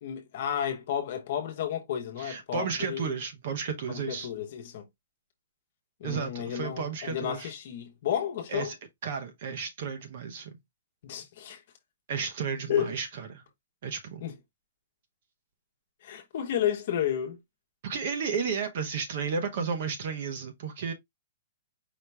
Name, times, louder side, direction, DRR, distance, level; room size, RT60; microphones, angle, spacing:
voice 1, 0.0-3.1 3.9-4.8 6.0-8.7 11.0-11.6 12.7-12.9 14.2-14.3 16.0-17.4, left 9 dB, 40° left, 1.1 m, -32 dB
voice 2, 2.2-4.3 6.0-7.5 8.5-8.7 9.0-10.6 12.1-13.4 13.8-14.2 17.8-20.9, right 6 dB, 40° right, 0.9 m, -33 dB
5.0 x 2.9 x 3.4 m
hypercardioid pair, 180°, 0 cm